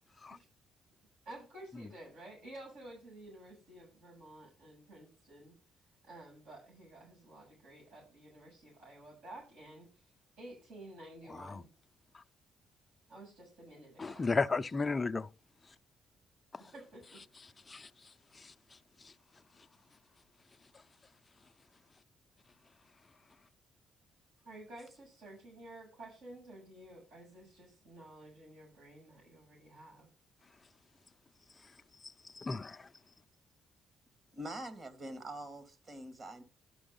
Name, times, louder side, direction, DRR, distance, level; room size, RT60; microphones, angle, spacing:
voice 1, 1.2-5.5 6.0-9.9 10.4-11.7 13.1-14.2 16.7-17.2 24.4-30.1, right 1 dB, 80° right, 7.6 m, -52 dB
voice 2, 14.0-15.3 17.7-17.9 32.3-32.8, left 4 dB, 25° left, 0.5 m, -33 dB
voice 3, 34.3-36.4, right 1 dB, 40° right, 2.4 m, -44 dB
12.5 x 6.2 x 5.5 m
cardioid pair, 90°, 0 cm